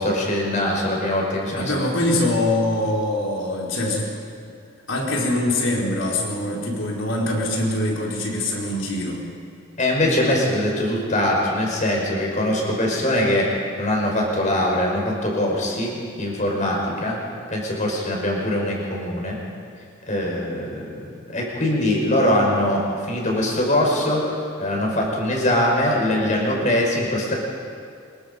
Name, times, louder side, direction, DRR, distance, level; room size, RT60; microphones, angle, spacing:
voice 1, 0.0-1.7 9.8-13.5 13.8-17.2 17.5-19.4 20.0-27.3, left 1 dB, 40° left, -1 dB, 5.2 m, -22 dB
voice 2, 1.5-4.1 4.9-9.2, left 1 dB, 70° left, -2 dB, 4.6 m, -23 dB
25.5 x 22.5 x 5.3 m, 2.2 s
head